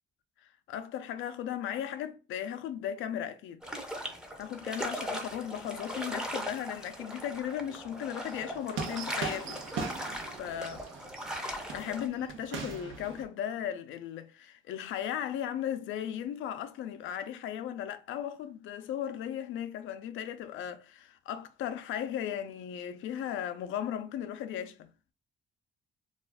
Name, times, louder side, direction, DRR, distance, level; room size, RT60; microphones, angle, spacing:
voice 1, 0.7-3.6 4.4-9.6 10.4-10.8 11.7-24.9, left 10 dB, 80° left, 0.4 m, -36 dB
sound 1, 3.6-12.1, equal, 5° right, 0.6 m, -39 dB
sound 2, 8.3-13.2, right 4 dB, 80° right, 0.7 m, -40 dB
2.4 x 2.3 x 3.3 m
cardioid pair, 90°, 20 cm